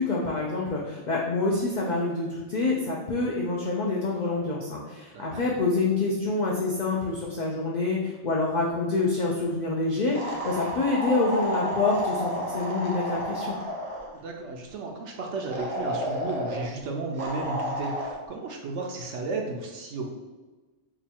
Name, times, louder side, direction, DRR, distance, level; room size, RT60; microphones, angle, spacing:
voice 1, 0.0-13.6, left 3 dB, 60° left, -3 dB, 0.5 m, -27 dB
sound 1, 10.1-14.1 15.5-16.7 17.2-18.1, equal, 35° right, 0.7 m, -31 dB
voice 2, 14.2-20.1, right 3 dB, 70° right, 1 dB, 0.8 m, -33 dB
2.9 x 2.3 x 4.2 m, 1.3 s
omnidirectional pair, 1.3 m